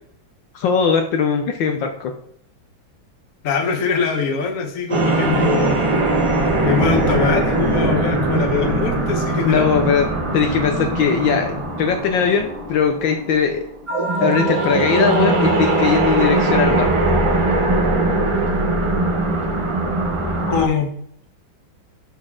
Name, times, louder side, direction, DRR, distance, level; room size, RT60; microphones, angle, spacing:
voice 1, 0.5-2.1 9.4-10.1 10.3-13.6 14.2-16.9, left 6 dB, 70° left, 4 dB, 1.4 m, -19 dB
voice 2, 3.4-5.8 6.6-9.7 20.5-20.9, left 6 dB, 45° left, 4 dB, 1.4 m, -22 dB
sound 1, 4.9-20.7, right 2 dB, 30° right, 0.6 m, -20 dB
11.5 x 4.2 x 3.7 m, 0.67 s
omnidirectional pair, 2.2 m